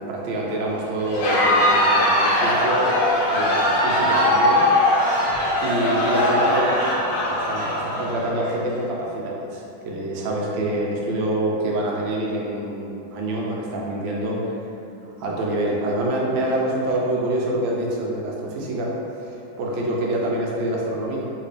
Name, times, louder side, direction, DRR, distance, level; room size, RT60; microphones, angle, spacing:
voice 1, 0.0-2.9 3.3-5.0 5.6-14.6 15.1-18.9 19.2-21.3, right 1 dB, 75° right, -3 dB, 1.3 m, -26 dB
Crowd, 1.0-8.6, left 1 dB, 80° left, 1.5 m, -20 dB
3.2 x 2.9 x 3.3 m, 2.6 s
omnidirectional pair, 2.3 m